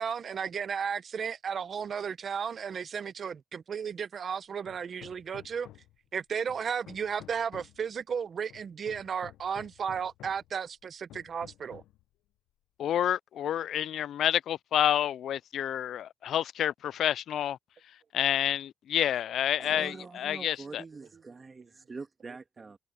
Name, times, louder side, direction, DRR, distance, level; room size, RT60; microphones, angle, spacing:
voice 1, 0.0-5.7 6.1-11.8, right 7 dB, 50° right, 0.8 m, -34 dB
Hammer, 4.6-6.0 6.5-7.9 8.5-10.5 11.1-12.0, left 13 dB, 85° left, 0.7 m, -52 dB
voice 2, 12.8-17.6 18.1-20.8, left 10 dB, 70° left, 0.3 m, -29 dB
voice 3, 19.6-22.8, right 4 dB, 30° right, 1.8 m, -44 dB
cardioid pair, 90°, 0 cm